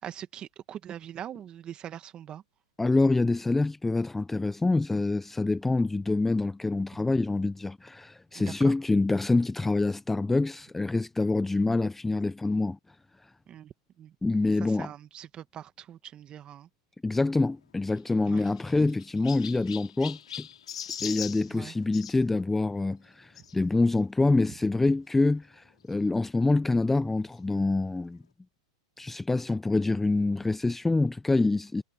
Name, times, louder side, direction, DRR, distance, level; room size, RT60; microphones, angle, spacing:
voice 1, 0.0-2.4 8.3-8.7 13.5-14.1 14.4-16.7 18.3-18.4 21.5-21.7, right 10 dB, 30° right, 1.5 m, -42 dB
voice 2, 2.8-12.8 13.2-13.3 14.2-14.9 17.0-20.5 21.0-28.2 29.0-31.8, left 2 dB, 5° left, 0.4 m, -26 dB
Chirp tweet, 17.9-22.2 23.3-23.5 24.2-24.3 24.5-24.6 25.9-26.0, left 8 dB, 90° left, 2.2 m, -40 dB
hypercardioid pair, 120°, 3 cm